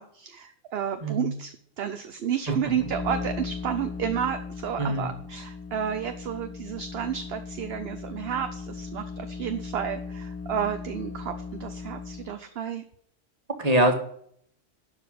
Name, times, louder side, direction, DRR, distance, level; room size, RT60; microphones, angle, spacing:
voice 1, 0.0-11.3 11.6-12.8, right 8 dB, 60° right, 8 dB, 0.9 m, -31 dB
voice 2, 1.0-1.3 4.8-5.1 13.6-13.9, right 1 dB, 30° right, 3 dB, 2.0 m, -23 dB
sound 1, 2.5-12.4, left 4 dB, 15° left, 0.5 m, -38 dB
12.0 x 5.1 x 6.4 m, 0.64 s
omnidirectional pair, 1.3 m